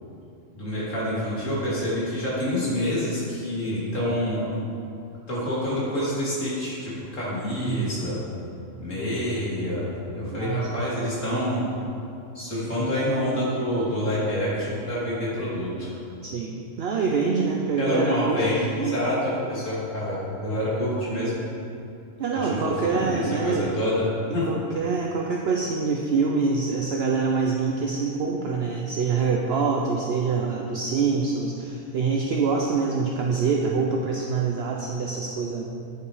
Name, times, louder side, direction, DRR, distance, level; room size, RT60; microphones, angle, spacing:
voice 1, 0.5-4.4 5.3-8.2 8.8-11.6 12.3-15.9 17.8-21.4 22.3-24.1 24.3-24.6, left 1 dB, 85° left, -8 dB, 3.3 m, -27 dB
voice 2, 10.3-10.8 16.2-19.0 22.2-23.7 24.5-35.6, right 4 dB, 60° right, 0 dB, 0.9 m, -25 dB
9.7 x 8.2 x 4.9 m, 2.7 s
omnidirectional pair, 1.3 m